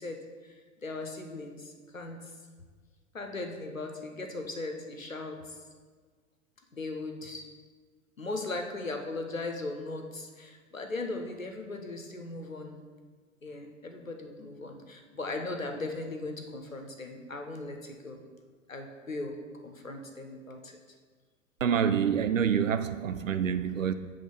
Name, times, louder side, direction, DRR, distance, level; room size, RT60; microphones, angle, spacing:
voice 1, 0.0-2.3 3.1-5.6 6.7-7.4 8.2-12.7 13.4-18.2 18.7-19.4 19.6-20.7, left 2 dB, 90° left, 0.9 m, -38 dB
voice 2, 21.6-23.9, right 8 dB, 80° right, 0.6 m, -27 dB
7.8 x 3.6 x 5.2 m
figure-of-eight pair, 90°, 39 cm